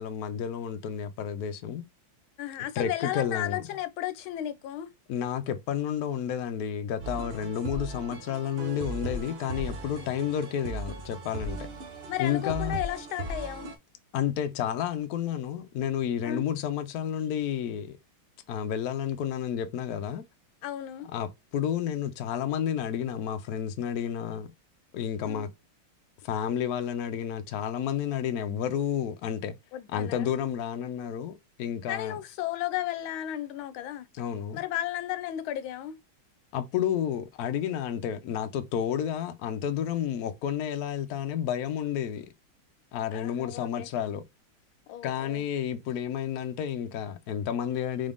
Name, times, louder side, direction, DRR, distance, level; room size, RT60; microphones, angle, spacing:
voice 1, 0.0-1.9 2.8-3.6 5.1-11.6 12.2-12.8 14.1-18.0 18.5-20.2 21.1-24.5 24.9-25.5 26.2-29.6 29.9-32.2 34.1-34.6 36.5-42.3 42.9-44.3 45.0-48.1, left 9 dB, 65° left, 0.9 m, -31 dB
voice 2, 2.4-4.9 12.1-13.7 16.2-16.4 20.6-21.1 25.2-25.4 29.7-30.3 31.9-34.1 34.5-36.0 43.1-43.9 44.9-45.4, left 12 dB, 85° left, 1.4 m, -34 dB
sound 1, 7.0-13.7, right 2 dB, 60° right, 0.6 m, -37 dB
4.0 x 3.5 x 2.5 m
omnidirectional pair, 2.2 m